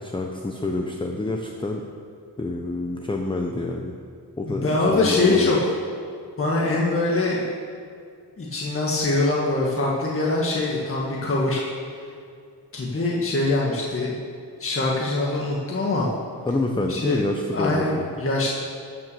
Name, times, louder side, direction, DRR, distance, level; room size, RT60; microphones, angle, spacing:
voice 1, 0.0-1.8 2.4-3.9 4.4-5.6 16.5-18.1, left 2 dB, 15° left, 2 dB, 0.8 m, -27 dB
voice 2, 4.5-5.6 6.4-7.5 8.4-11.6 12.7-14.2 14.6-16.1 16.9-17.2 17.5-18.5, left 2 dB, 35° left, -4 dB, 1.7 m, -23 dB
13.5 x 6.2 x 6.8 m, 2.3 s
cardioid pair, 90°, 38 cm